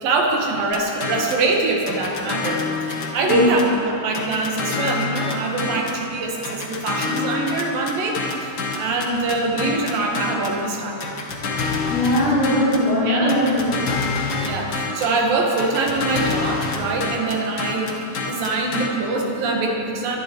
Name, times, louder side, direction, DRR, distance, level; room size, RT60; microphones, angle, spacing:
voice 1, 0.0-8.5 8.8-11.1 13.0-13.3 14.4-18.0 18.3-20.2, right 2 dB, 80° right, 0 dB, 3.6 m, -23 dB
sound 1, 0.7-1.5 1.9-3.8 4.1-6.0 6.4-10.6 11.0-12.9 13.3-15.2 15.6-18.9, left 4 dB, 55° left, 1.4 m, -27 dB
voice 2, 11.9-13.7, left 1 dB, 75° left, -11 dB, 5.7 m, -19 dB
24.0 x 11.0 x 4.7 m, 3.0 s
omnidirectional pair, 4.0 m